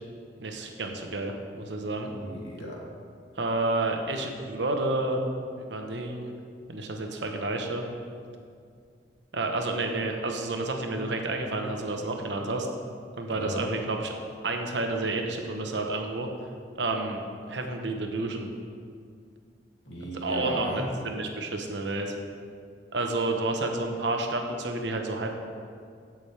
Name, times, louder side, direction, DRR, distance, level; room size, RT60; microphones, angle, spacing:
voice 1, 0.4-2.1 3.3-5.2 5.6-6.4 6.7-7.8 9.3-12.7 13.2-14.1 14.4-16.3 16.8-17.2 17.5-18.5 20.2-22.1 22.9-25.3, right 2 dB, 85° right, 3 dB, 1.1 m, -30 dB
voice 2, 2.0-2.8 13.3-13.6 19.9-20.9, equal, 90° left, -4 dB, 2.5 m, -35 dB
15.5 x 6.3 x 3.4 m, 2.3 s
head